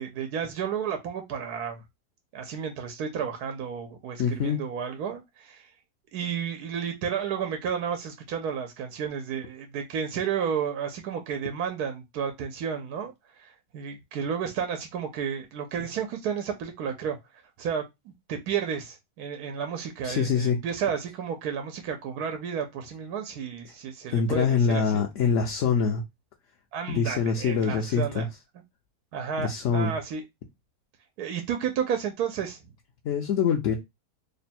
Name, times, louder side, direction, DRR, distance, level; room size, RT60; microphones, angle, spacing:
voice 1, 0.0-1.8 2.3-5.7 6.1-13.1 13.4-17.2 17.6-17.8 18.3-25.0 26.7-28.3 29.1-30.2 31.2-32.6, right 7 dB, 80° right, 1.2 m, -32 dB
voice 2, 4.2-4.6 20.0-20.6 24.1-26.0 26.9-28.3 29.4-29.9 33.0-33.8, left 6 dB, 60° left, 0.8 m, -24 dB
3.3 x 2.2 x 4.2 m
omnidirectional pair, 1.6 m